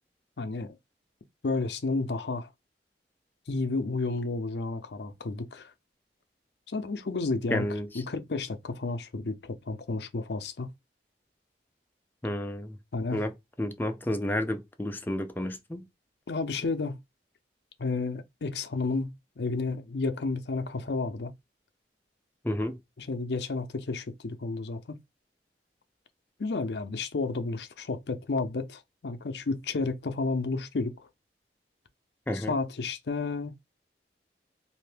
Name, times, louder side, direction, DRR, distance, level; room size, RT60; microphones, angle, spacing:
voice 1, 0.4-0.8 1.4-2.5 3.5-5.7 6.7-10.7 12.9-13.2 16.3-17.0 17.8-21.3 23.0-25.0 26.4-31.1 32.3-33.6, left 3 dB, 70° left, 0.5 m, -31 dB
voice 2, 7.5-7.9 12.2-12.8 13.1-13.3 13.6-15.9 22.4-22.8 32.3-32.5, left 1 dB, 10° left, 0.4 m, -31 dB
2.7 x 2.6 x 3.3 m
head